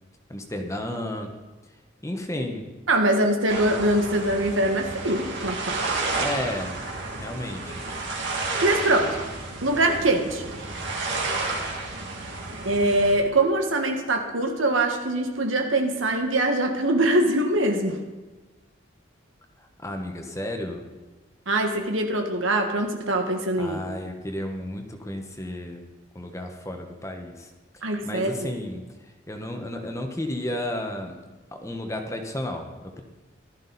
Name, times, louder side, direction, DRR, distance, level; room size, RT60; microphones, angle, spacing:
voice 1, 0.3-1.3 2.0-2.6 6.1-6.8 7.2-7.9 19.8-20.8 23.6-25.8 26.1-28.8 29.3-31.1 31.5-33.0, left 1 dB, 15° left, 4 dB, 1.1 m, -32 dB
voice 2, 2.9-5.8 8.6-9.2 9.6-10.4 12.6-18.0 21.5-23.8 27.8-28.5, right 1 dB, 85° right, 3 dB, 1.7 m, -23 dB
sound 1, 3.5-13.2, right 3 dB, 70° right, 2.4 m, -31 dB
15.0 x 12.5 x 4.1 m, 1.2 s
head